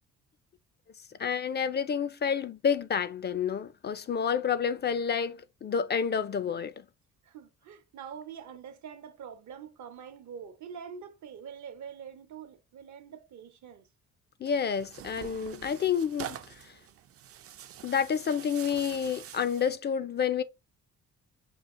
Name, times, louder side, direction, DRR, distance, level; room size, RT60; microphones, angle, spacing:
voice 1, 1.2-6.8 14.4-16.4 17.8-20.4, left 7 dB, 35° left, 0.4 m, -29 dB
voice 2, 7.2-13.9, right 7 dB, 70° right, 0.8 m, -45 dB
Tearing, 14.4-19.8, right 10 dB, 50° right, 0.5 m, -45 dB
5.4 x 2.4 x 3.6 m
cardioid pair, 90°, 30 cm